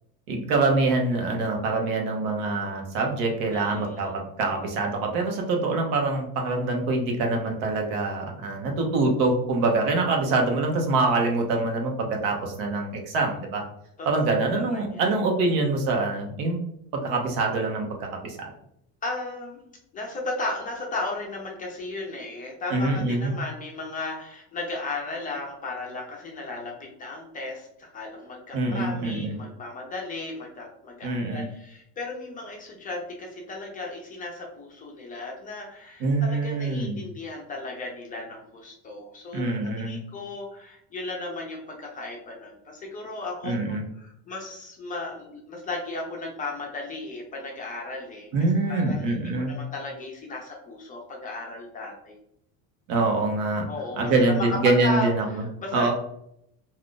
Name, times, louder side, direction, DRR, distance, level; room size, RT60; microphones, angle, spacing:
voice 1, 0.3-13.6 14.0-16.6 16.9-18.4 22.7-23.3 28.5-29.4 31.0-31.4 36.0-37.0 39.3-40.0 43.4-43.8 48.3-49.6 52.9-53.7 54.0-55.4 55.7-55.9, right 3 dB, 85° right, 2 dB, 0.9 m, -25 dB
voice 2, 3.5-4.1 14.0-14.1 14.5-15.1 19.0-19.6 19.9-39.4 39.8-43.5 44.0-48.3 48.7-52.2 53.7-55.9, left 2 dB, 20° left, 0 dB, 0.4 m, -35 dB
2.4 x 2.4 x 3.6 m, 0.75 s
cardioid pair, 155°, 41 cm